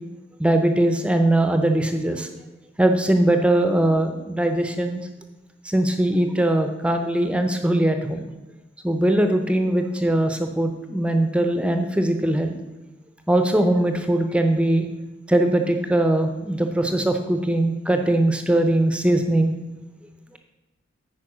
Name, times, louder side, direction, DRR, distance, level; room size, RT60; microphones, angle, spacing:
voice 1, 0.4-2.3 2.8-5.0 5.6-8.3 8.8-12.5 13.3-14.9 15.3-19.5, right 1 dB, 5° right, 6 dB, 0.5 m, -21 dB
9.3 x 4.7 x 6.0 m, 1.1 s
head